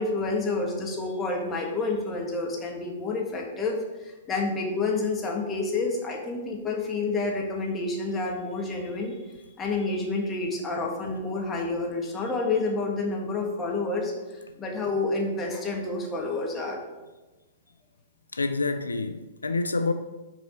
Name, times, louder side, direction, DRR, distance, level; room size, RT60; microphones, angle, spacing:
voice 1, 0.0-9.2 9.6-16.8, left 3 dB, 20° left, 1.6 m, -29 dB
voice 2, 18.3-19.9, left 3 dB, 85° left, 0.3 m, -27 dB
6.1 x 4.1 x 5.3 m
figure-of-eight pair, 110°, 0 cm